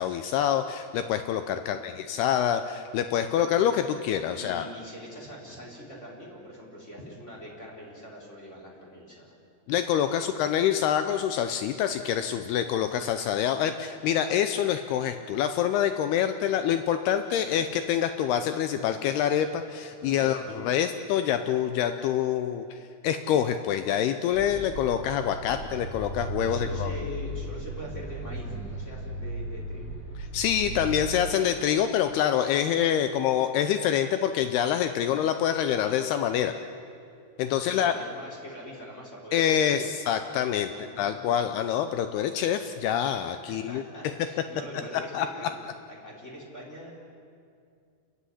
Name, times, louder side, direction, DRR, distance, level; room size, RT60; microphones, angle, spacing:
voice 1, 0.0-4.7 9.7-22.8 23.0-26.9 30.3-36.5 37.4-37.9 39.3-43.8 45.1-45.3, left 9 dB, 75° left, 9 dB, 2.6 m, -26 dB
voice 2, 4.3-9.3 10.2-10.4 17.2-17.7 20.0-20.8 25.5-25.7 26.4-29.9 37.5-40.0 40.6-41.3 43.5-45.5 45.9-46.9, equal, 15° left, -2 dB, 4.2 m, -43 dB
sound 1, 24.3-31.1, right 1 dB, ahead, 6.3 m, -36 dB
29.0 x 14.5 x 10.0 m, 2.4 s
omnidirectional pair, 4.9 m